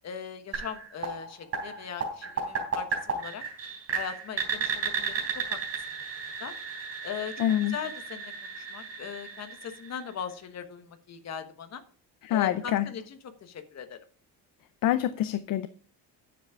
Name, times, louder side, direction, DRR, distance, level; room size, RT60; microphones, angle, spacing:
voice 1, 0.0-3.4 3.9-5.6 6.4-6.5 7.0-11.8 12.3-14.0, left 8 dB, 40° left, 8 dB, 1.3 m, -39 dB
sound 1, 0.5-10.3, right 5 dB, 35° right, 3.7 m, -34 dB
voice 2, 7.4-7.7 12.3-12.9 14.8-15.7, left 12 dB, 55° left, 13 dB, 0.6 m, -26 dB
10.0 x 7.5 x 4.8 m, 0.43 s
cardioid pair, 170°, 41 cm